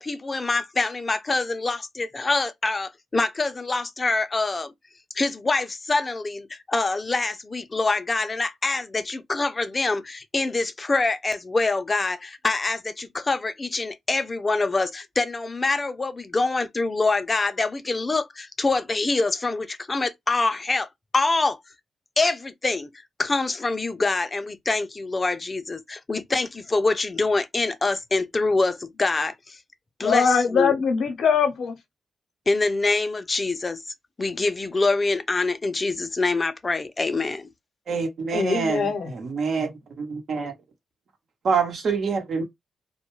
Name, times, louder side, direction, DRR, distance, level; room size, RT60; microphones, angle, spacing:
voice 1, 0.0-4.7 5.1-20.9 21.1-21.6 22.2-29.6 30.0-30.8 32.5-33.8 34.2-37.5, left 3 dB, 35° left, 0.5 m, -25 dB
voice 2, 30.0-31.8 38.3-39.1, left 5 dB, 80° left, 0.7 m, -22 dB
voice 3, 37.9-39.7 40.0-40.5 41.4-42.4, right 5 dB, 70° right, 0.9 m, -26 dB
2.2 x 2.2 x 3.0 m
cardioid pair, 65°, 0 cm